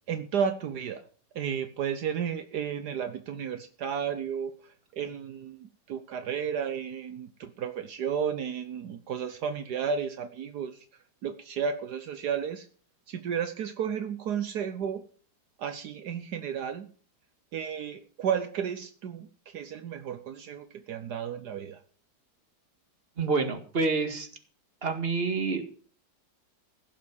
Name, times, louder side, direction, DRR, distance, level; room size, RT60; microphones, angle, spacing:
voice 1, 0.1-1.0 1.3-10.8 11.2-12.7 13.1-15.0 15.6-16.9 17.5-19.3 19.5-21.8, right 7 dB, 70° right, 10 dB, 1.5 m, -33 dB
voice 2, 23.2-24.3 24.8-25.7, right 4 dB, 35° right, 7 dB, 2.1 m, -28 dB
16.5 x 7.4 x 7.1 m, 0.42 s
omnidirectional pair, 1.8 m